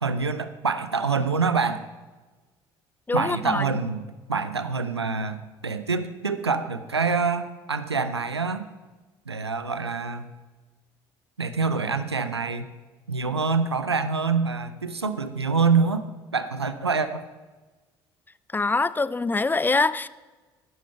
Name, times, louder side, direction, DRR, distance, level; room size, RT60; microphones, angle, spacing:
voice 1, 0.0-1.8 3.1-8.7 9.3-10.3 11.4-12.7 13.1-16.0 16.3-17.2, right 4 dB, 90° right, 12 dB, 0.6 m, -26 dB
voice 2, 3.1-3.6 18.5-20.1, left 3 dB, 15° left, 18 dB, 0.4 m, -24 dB
11.0 x 11.0 x 5.6 m, 1.3 s
figure-of-eight pair, 55°, 13 cm